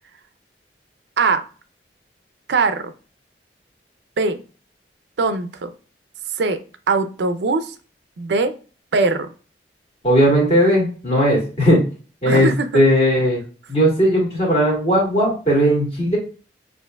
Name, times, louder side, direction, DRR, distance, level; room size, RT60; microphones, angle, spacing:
voice 1, 2.5-2.9 4.2-4.4 5.2-5.7 6.4-6.6 6.9-7.7 8.2-8.5 8.9-9.3 12.2-12.7, right 3 dB, 70° right, 9 dB, 0.5 m, -20 dB
voice 2, 10.0-11.8 12.2-12.5 12.7-13.4 13.7-16.2, equal, 35° left, -3 dB, 1.9 m, -17 dB
6.6 x 2.6 x 2.3 m, 0.37 s
head